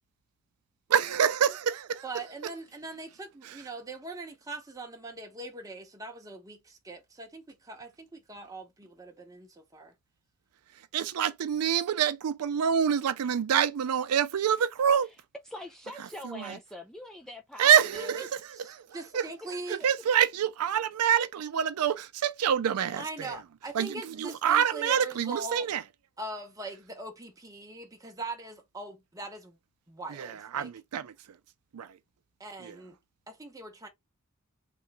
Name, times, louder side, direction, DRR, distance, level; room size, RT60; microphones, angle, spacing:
voice 1, 0.9-1.5 3.4-3.6 10.9-15.1 16.2-16.6 17.6-18.4 18.7-18.8 19.1-19.3 19.7-23.4 23.7-25.8 30.1-31.1 31.7-32.0 32.6-32.8, right 8 dB, 90° right, 0.4 m, -26 dB
voice 2, 2.0-9.9 17.6-18.1 18.5-19.9 23.0-25.7 26.2-29.6 29.9-30.7 32.4-33.0 33.3-33.9, right 2 dB, 15° right, 0.8 m, -41 dB
voice 3, 15.5-18.3, left 1 dB, ahead, 0.4 m, -43 dB
3.3 x 2.9 x 3.4 m
head